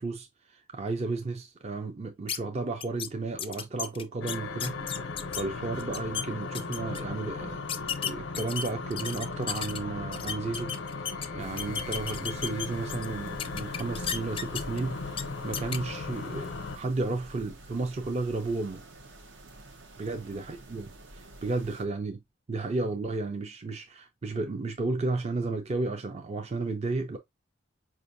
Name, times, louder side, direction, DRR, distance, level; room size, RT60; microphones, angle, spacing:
voice 1, 0.0-7.6 8.0-10.8 11.0-18.8 20.0-22.2 22.5-27.2, right 3 dB, 35° right, 0.5 m, -33 dB
sound 1, 2.3-2.4 2.8-3.1 3.4-5.4 5.8-6.2 6.5-7.0 7.7-9.8 10.1-11.3 11.6-13.1 13.4-14.8 15.1-15.2 15.5-15.8, left 8 dB, 30° left, 0.3 m, -33 dB
sound 2, 4.2-16.8, left 4 dB, 85° left, 0.6 m, -37 dB
sound 3, 11.4-21.8, right 1 dB, 70° right, 0.8 m, -48 dB
5.1 x 2.5 x 2.6 m
head